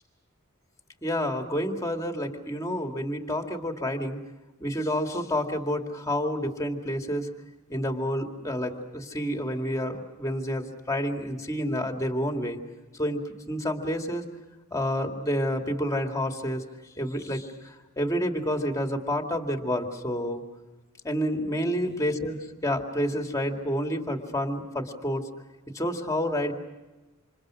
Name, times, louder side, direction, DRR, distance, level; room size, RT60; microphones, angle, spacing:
voice 1, 1.0-4.2 4.6-7.3 7.7-12.6 13.0-13.2 13.5-14.2 14.7-16.6 17.0-17.5 18.0-20.4 21.0-25.3 25.7-26.5, equal, 15° left, 3 dB, 2.2 m, -29 dB
29.0 x 27.0 x 6.3 m, 1.1 s
head